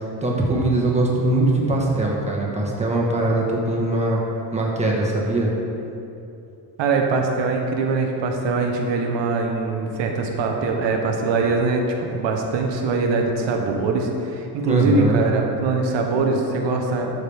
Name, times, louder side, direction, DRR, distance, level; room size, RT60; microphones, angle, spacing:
voice 1, 0.2-4.2 4.5-5.5 14.6-15.2, right 2 dB, 15° right, -3 dB, 1.6 m, -21 dB
voice 2, 6.8-11.8 12.1-17.1, right 3 dB, 80° right, 2 dB, 1.3 m, -22 dB
12.5 x 6.4 x 3.6 m, 2.8 s
cardioid pair, 135°, 43 cm